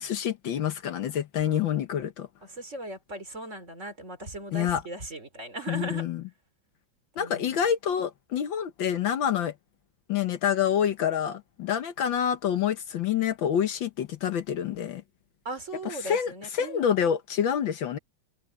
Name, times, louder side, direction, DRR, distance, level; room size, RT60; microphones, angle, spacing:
voice 1, 0.0-2.3 4.5-4.8 5.7-6.2 7.2-9.5 10.1-15.0 15.9-18.0, left 9 dB, 70° left, 1.7 m, -27 dB
voice 2, 2.4-6.0 7.2-7.7 15.4-17.0, right 2 dB, 35° right, 4.2 m, -38 dB
omnidirectional pair, 2.2 m